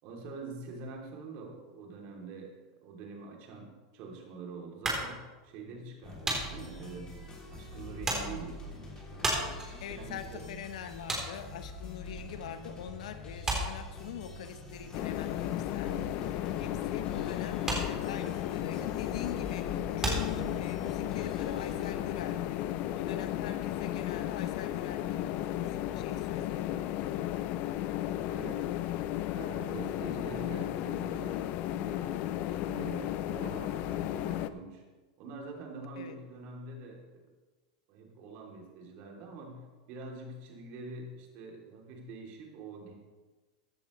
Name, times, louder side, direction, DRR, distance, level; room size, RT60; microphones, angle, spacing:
voice 1, 0.0-2.5 2.8-7.2 7.5-9.5 9.9-10.5 28.3-28.6 29.3-31.4 31.7-34.8 35.2-37.3 37.9-42.9, right 3 dB, 50° right, 0 dB, 3.0 m, -45 dB
sound 1, 4.8-12.7 12.9-21.0, right 2 dB, 15° right, 3.5 m, -36 dB
sound 2, 6.0-21.9, left 2 dB, 20° left, 2.9 m, -45 dB
voice 2, 9.8-16.0 16.6-26.9 36.0-36.2, left 9 dB, 80° left, 9 dB, 1.0 m, -43 dB
sound 3, 14.9-34.5, left 13 dB, 50° left, 0.6 m, -34 dB
15.0 x 10.5 x 3.2 m, 1.3 s
supercardioid pair, 130°, 4 cm